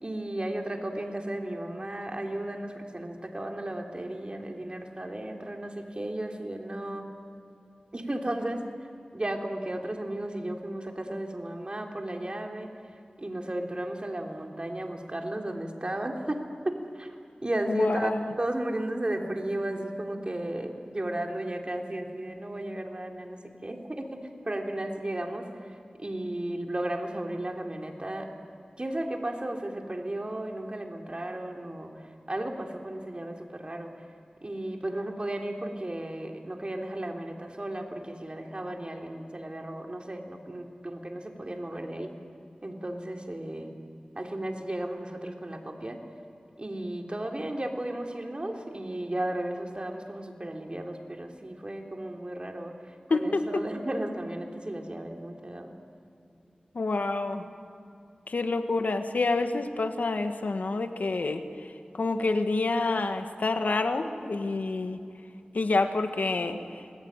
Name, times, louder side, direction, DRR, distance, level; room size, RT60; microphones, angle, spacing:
voice 1, 0.0-7.1 7.9-8.6 9.1-12.7 13.2-17.1 17.4-18.1 18.4-25.5 26.0-28.3 28.8-31.9 32.3-33.9 34.4-42.1 42.6-43.7 44.1-46.0 46.6-55.7, right 1 dB, 40° right, 2 dB, 3.4 m, -34 dB
voice 2, 17.7-18.3 53.1-53.6 56.7-57.5 58.3-61.4 61.9-65.0 65.5-66.6, left 3 dB, 85° left, 7 dB, 1.6 m, -27 dB
27.0 x 21.0 x 9.0 m, 2.6 s
wide cardioid pair, 45°, 3 cm